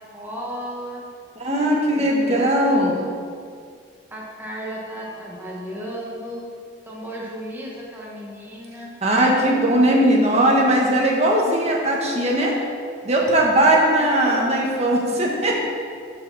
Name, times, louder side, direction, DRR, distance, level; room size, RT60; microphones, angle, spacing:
voice 1, 0.1-1.0 1.6-3.2 4.1-6.5 6.9-8.9 9.4-11.0 14.0-14.5 14.8-15.3, equal, 10° right, -5 dB, 1.7 m, -35 dB
voice 2, 1.4-2.9 9.0-12.5 13.0-15.7, right 1 dB, 35° right, -2 dB, 1.4 m, -19 dB
13.5 x 4.9 x 4.2 m, 2.1 s
head